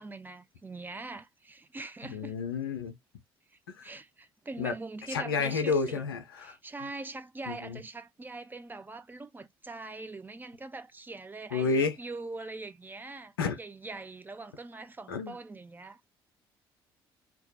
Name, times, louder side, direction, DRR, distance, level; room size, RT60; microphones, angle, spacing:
voice 1, 0.0-2.3 3.5-6.1 6.4-13.3 13.6-16.1, right 3 dB, 15° right, 0.3 m, -43 dB
voice 2, 2.0-3.0 3.7-3.9 4.6-4.7 5.1-6.6 7.5-7.8 11.5-12.0 13.4-13.6 15.1-15.4, left 4 dB, 75° left, 0.5 m, -30 dB
2.2 x 2.0 x 2.7 m
figure-of-eight pair, 50°, 12 cm